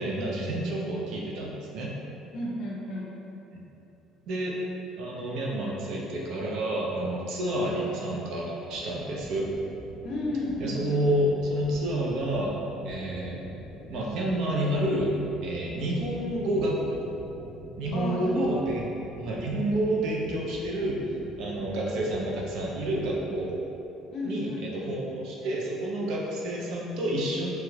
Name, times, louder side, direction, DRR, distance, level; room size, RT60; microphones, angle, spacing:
voice 1, 0.0-1.9 3.5-3.6 4.3-4.6 5.0-9.5 10.6-13.4 13.9-15.1 15.4-17.0 17.8-18.9 19.2-23.5 24.2-27.5, right 1 dB, 65° right, -3 dB, 0.5 m, -29 dB
voice 2, 2.3-3.1 10.0-11.0 17.9-18.6 19.7-19.9 24.1-24.9, left 1 dB, 50° left, -3 dB, 0.5 m, -33 dB
sound 1, 8.7-23.4, equal, 30° right, 0.8 m, -46 dB
3.0 x 2.3 x 3.2 m, 2.9 s
cardioid pair, 155°, 0 cm